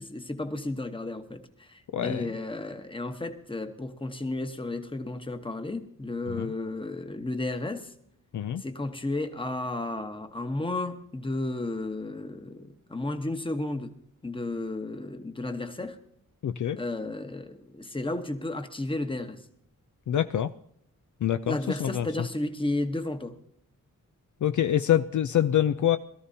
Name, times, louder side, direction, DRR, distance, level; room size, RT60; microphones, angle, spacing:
voice 1, 0.0-7.9 8.6-16.0 16.8-19.4 21.5-23.4, left 2 dB, 15° left, 1.1 m, -33 dB
voice 2, 1.9-2.3 6.4-6.5 8.3-8.6 16.4-16.8 20.1-20.5 21.2-21.6 21.8-22.1 24.4-26.0, left 10 dB, 60° left, 0.5 m, -25 dB
21.5 x 13.5 x 2.8 m
wide cardioid pair, 115°, 33 cm